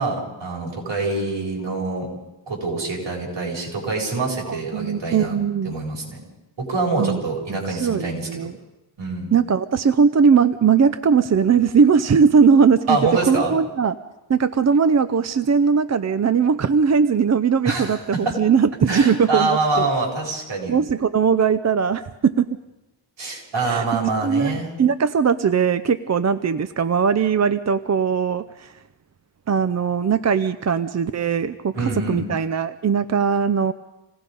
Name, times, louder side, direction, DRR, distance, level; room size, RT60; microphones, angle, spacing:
voice 1, 0.0-2.1 2.5-5.4 5.6-6.2 6.7-8.5 9.0-9.3 12.9-13.5 17.6-18.4 18.9-20.7 23.2-24.7 31.7-32.2, right 3 dB, 65° right, -1 dB, 7.3 m, -25 dB
voice 2, 4.5-5.7 7.0-7.2 7.5-8.5 9.3-13.0 13.3-14.0 14.3-19.9 20.7-22.5 23.6-28.7 29.5-33.7, right 6 dB, 35° right, 11 dB, 0.6 m, -19 dB
27.5 x 18.5 x 5.4 m, 0.99 s
wide cardioid pair, 115°, 46 cm